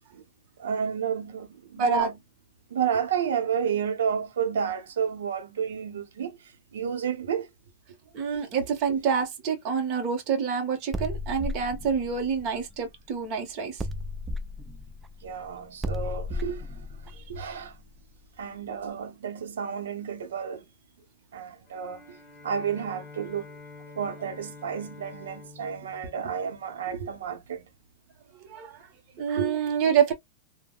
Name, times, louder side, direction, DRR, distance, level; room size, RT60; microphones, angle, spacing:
voice 1, 0.6-2.2 2.7-7.5 15.2-17.8 18.4-20.7 21.3-22.2 22.4-23.5 24.0-27.7 29.4-29.6, right 7 dB, 90° right, 0.7 m, -31 dB
voice 2, 1.8-2.1 8.1-13.8 28.4-28.7 29.2-30.1, right 6 dB, 35° right, 0.9 m, -27 dB
sound 1, 10.9-13.3 13.8-18.4, left 1 dB, 10° right, 0.3 m, -35 dB
Bowed string instrument, 21.7-27.2, left 4 dB, 20° left, 1.1 m, -48 dB
3.4 x 2.1 x 2.2 m
supercardioid pair, 160°, 0 cm